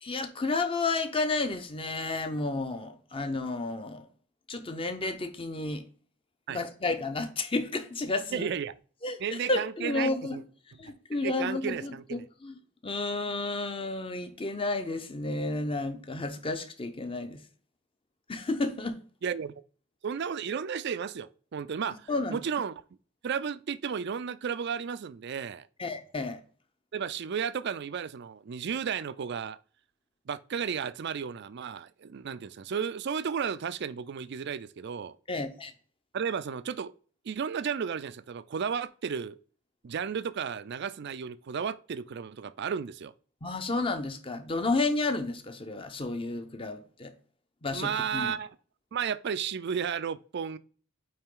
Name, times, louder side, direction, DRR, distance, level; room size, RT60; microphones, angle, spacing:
voice 1, 0.0-4.1 4.5-5.8 6.5-8.5 9.0-10.4 10.8-12.6 12.8-17.4 18.3-19.0 22.1-22.4 25.8-26.4 35.3-35.7 43.4-47.1 47.6-48.3, left 3 dB, 25° left, 0.7 m, -31 dB
voice 2, 8.3-8.7 9.2-10.4 10.8-10.9 11.2-12.2 19.2-19.5 20.0-22.7 23.2-25.7 26.9-29.6 30.3-35.2 36.1-36.9 37.2-39.4 39.8-43.1 47.7-48.5 48.9-50.6, right 7 dB, 55° right, 0.4 m, -33 dB
8.8 x 3.3 x 3.8 m
head